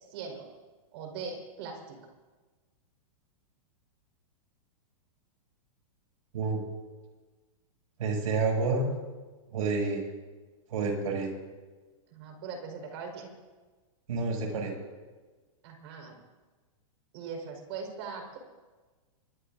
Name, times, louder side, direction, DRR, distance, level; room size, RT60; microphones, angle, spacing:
voice 1, 0.1-0.5 0.9-2.0 12.1-13.3 15.6-16.1 17.1-18.4, right 5 dB, 45° right, 2 dB, 5.0 m, -40 dB
voice 2, 8.0-8.9 9.5-10.0 10.7-11.3 14.1-14.7, right 4 dB, 75° right, 0 dB, 7.5 m, -29 dB
24.0 x 22.0 x 2.7 m, 1.3 s
supercardioid pair, 165°, 18 cm